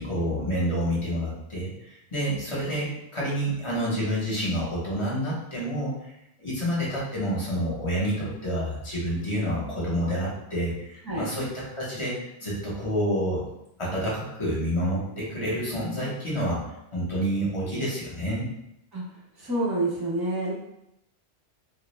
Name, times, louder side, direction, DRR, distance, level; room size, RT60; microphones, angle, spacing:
voice 1, 0.0-5.9 6.4-13.4 13.8-16.6 16.9-18.5, equal, 30° left, -7 dB, 0.8 m, -28 dB
voice 2, 19.4-20.5, right 2 dB, 30° right, -5 dB, 0.5 m, -27 dB
2.2 x 2.0 x 3.0 m, 0.83 s
omnidirectional pair, 1.1 m